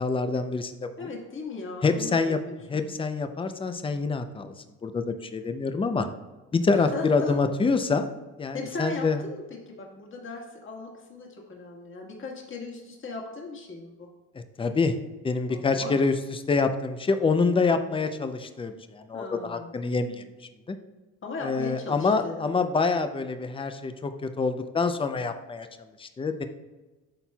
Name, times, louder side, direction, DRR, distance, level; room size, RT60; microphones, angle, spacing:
voice 1, 0.0-1.1 1.8-2.4 2.7-4.5 4.8-6.1 6.5-8.1 8.4-9.2 14.3-15.0 15.2-20.2 20.7-20.8 21.4-25.7 26.0-26.5, left 4 dB, 15° left, 8 dB, 0.5 m, -26 dB
voice 2, 1.0-2.8 6.7-7.4 8.5-14.1 15.5-16.0 19.1-19.7 21.2-22.4, left 3 dB, 35° left, -1 dB, 1.7 m, -38 dB
11.5 x 4.2 x 2.3 m, 1.2 s
cardioid pair, 110°, 34 cm